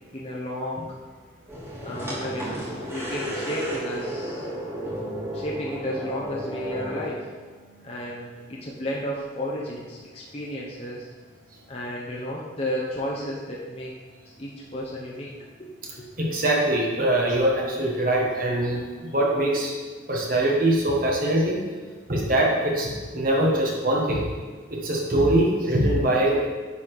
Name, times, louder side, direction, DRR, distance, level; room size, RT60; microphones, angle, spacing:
voice 1, 0.1-0.9 1.8-2.5 2.9-4.4 5.3-7.3 7.8-11.1 11.7-13.9 14.4-15.7 16.0-16.1, equal, 30° left, -4 dB, 0.9 m, -33 dB
sound 1, 1.5-7.0, equal, 15° right, 2.2 m, -33 dB
voice 2, 16.2-19.7 20.1-21.6 22.1-24.2 24.8-26.4, right 1 dB, 45° right, -2 dB, 1.6 m, -22 dB
9.6 x 4.2 x 4.9 m, 1.4 s
head